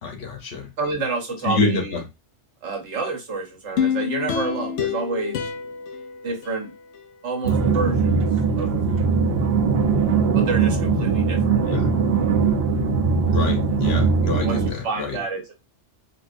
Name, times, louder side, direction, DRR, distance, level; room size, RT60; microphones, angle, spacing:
voice 1, 0.0-0.7 1.4-2.0 11.7-11.9 13.3-15.2, left 3 dB, 60° left, 1.0 m, -27 dB
voice 2, 0.8-2.0 2.6-5.5 6.2-6.7 7.2-8.2 8.6-9.0 10.3-11.4 14.4-15.5, right 3 dB, 80° right, 1.3 m, -29 dB
sound 1, 3.8-7.1 7.5-7.6, left 8 dB, 85° left, 1.0 m, -28 dB
sound 2, 7.4-14.7, right 5 dB, 60° right, 0.9 m, -20 dB
3.7 x 2.7 x 2.5 m
omnidirectional pair, 1.2 m